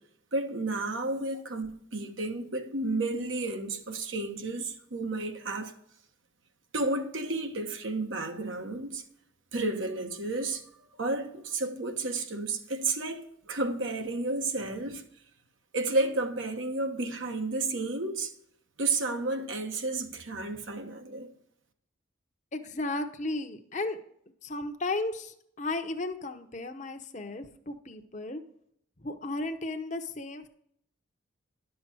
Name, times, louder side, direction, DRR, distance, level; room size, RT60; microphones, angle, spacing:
voice 1, 0.3-5.7 6.7-9.0 9.5-10.6 10.9-15.0 15.7-18.3 18.8-21.3, right 2 dB, 70° right, 1.3 m, -32 dB
voice 2, 22.5-24.0 24.4-28.4 29.0-30.5, left 2 dB, 35° left, 0.8 m, -34 dB
11.0 x 6.4 x 6.1 m
head